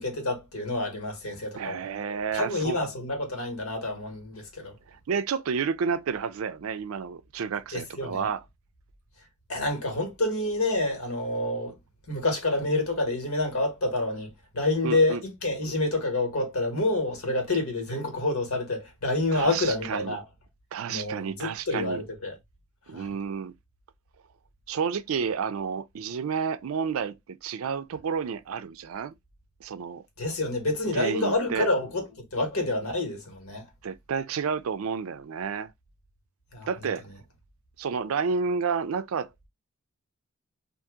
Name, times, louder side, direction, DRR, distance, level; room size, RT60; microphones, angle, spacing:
voice 1, 0.0-1.8 2.3-4.8 7.7-8.3 9.5-11.7 12.1-20.2 20.9-22.3 22.9-23.1 30.2-32.1 32.3-33.7 36.5-36.7, left 2 dB, 85° left, 1.4 m, -28 dB
voice 2, 1.5-2.8 4.9-8.4 14.8-15.2 19.3-20.2 20.7-22.0 22.9-23.5 24.7-29.1 29.6-30.0 30.9-31.7 33.8-35.7 36.7-37.0 37.8-39.5, right 6 dB, 80° right, 0.4 m, -30 dB
2.7 x 2.5 x 3.6 m
head